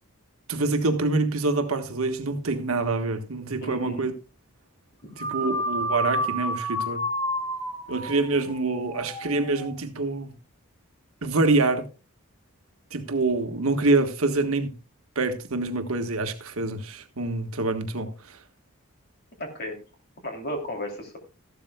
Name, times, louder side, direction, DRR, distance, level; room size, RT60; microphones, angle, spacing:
voice 1, 0.5-4.1 5.2-7.0 7.9-10.3 11.2-11.9 12.9-14.8 15.1-18.4, right 3 dB, 75° right, 1.4 m, -26 dB
voice 2, 3.6-4.0 5.0-5.1 19.4-19.8 20.2-21.2, equal, 45° left, 2.9 m, -34 dB
sound 1, 5.2-9.7, equal, 15° left, 3.9 m, -30 dB
14.0 x 12.0 x 2.3 m
head